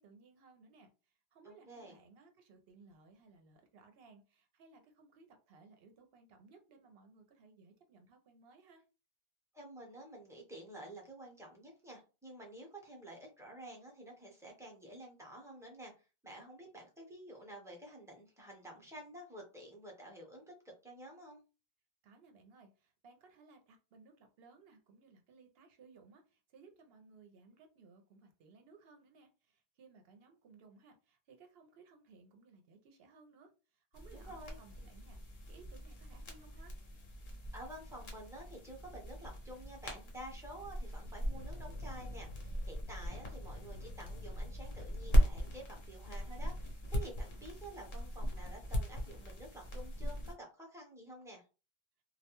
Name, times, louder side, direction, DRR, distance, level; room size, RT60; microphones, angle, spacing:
voice 1, 0.0-8.8 22.0-36.8, right 4 dB, 70° right, 5 dB, 0.8 m, -61 dB
voice 2, 1.4-2.0 9.5-15.9 16.2-21.4 34.1-34.6 37.5-51.4, right 1 dB, 5° right, -1 dB, 0.6 m, -50 dB
sound 1, 33.9-50.3, equal, 55° left, 0.8 m, -37 dB
2.3 x 2.1 x 2.9 m, 0.32 s
omnidirectional pair, 1.1 m